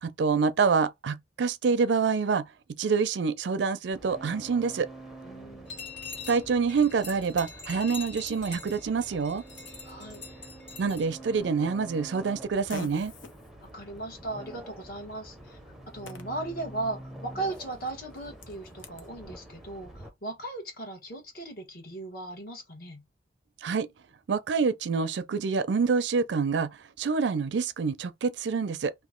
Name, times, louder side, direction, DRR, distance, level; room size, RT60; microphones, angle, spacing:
voice 1, 0.0-2.4 2.8-4.9 6.3-9.4 10.8-13.1 23.6-23.9 24.3-26.7 27.0-28.9, right 5 dB, 65° right, 0.4 m, -26 dB
sound 1, 3.9-20.1, right 1 dB, ahead, 0.6 m, -47 dB
voice 2, 5.2-5.8 9.8-10.2 13.6-15.6 15.9-23.0, right 2 dB, 50° left, 1.3 m, -37 dB
sound 2, 5.7-11.1, left 5 dB, 70° left, 1.8 m, -43 dB
Fart, 11.3-19.1, left 4 dB, 90° left, 0.7 m, -50 dB
2.9 x 2.3 x 3.7 m
head